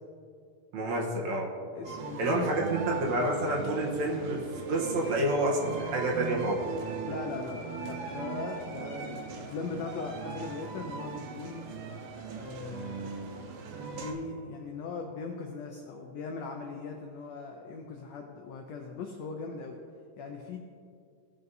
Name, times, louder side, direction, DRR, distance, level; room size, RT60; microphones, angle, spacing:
voice 1, 0.7-1.5 2.2-4.4 4.7-6.6, right 1 dB, 65° right, -2 dB, 2.1 m, -28 dB
voice 2, 1.7-2.6 7.0-11.6 12.3-13.2 13.9-19.8 20.2-20.6, left 4 dB, 80° left, 2 dB, 1.5 m, -39 dB
sound 1, 1.8-14.1, right 5 dB, 85° right, 2.5 m, -39 dB
sound 2, 4.5-12.0, equal, 45° left, 2.8 m, -50 dB
16.0 x 6.7 x 2.7 m, 2.4 s
omnidirectional pair, 3.8 m